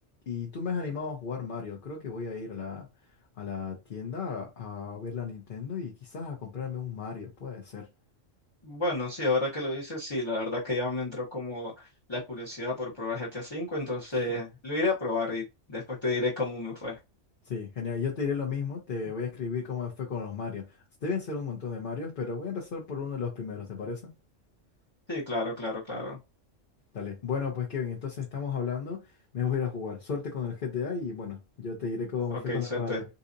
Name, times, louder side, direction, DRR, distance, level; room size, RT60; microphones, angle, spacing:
voice 1, 0.3-2.9 3.4-7.9 14.3-14.4 17.5-20.6 21.0-24.1 26.9-29.0 29.3-33.1, left 6 dB, 50° left, 1.0 m, -34 dB
voice 2, 8.6-17.0 25.1-26.2 32.3-33.0, left 2 dB, 25° left, 1.0 m, -31 dB
3.9 x 2.8 x 2.6 m
omnidirectional pair, 1.3 m